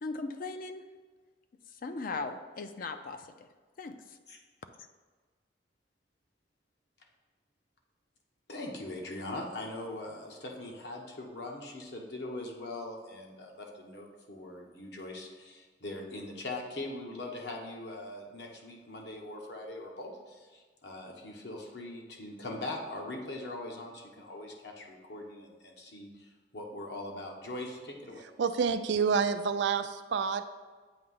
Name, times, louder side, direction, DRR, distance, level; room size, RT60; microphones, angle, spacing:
voice 1, 0.0-0.8 1.7-3.5 3.8-4.2, left 3 dB, 50° left, 8 dB, 0.4 m, -38 dB
voice 2, 8.5-28.3, left 2 dB, 65° left, 0 dB, 1.1 m, -41 dB
voice 3, 28.4-30.4, right 6 dB, 75° right, 10 dB, 0.4 m, -28 dB
7.9 x 2.9 x 5.5 m, 1.4 s
head